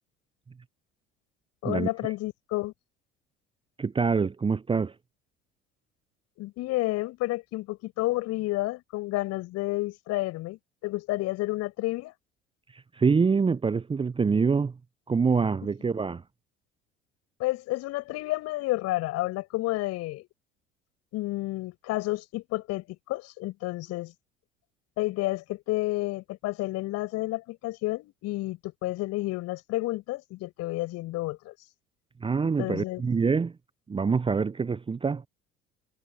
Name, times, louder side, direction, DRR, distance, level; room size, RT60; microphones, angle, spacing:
voice 1, 1.6-2.7 6.4-12.1 17.4-20.3 21.1-24.1 25.0-31.5 32.6-33.0, left 19 dB, 50° left, 6.8 m, -30 dB
voice 2, 3.8-4.9 12.7-14.7 15.1-16.2 32.2-33.5 33.9-35.2, right 5 dB, 15° right, 1.0 m, -25 dB
figure-of-eight pair, 60°, 32 cm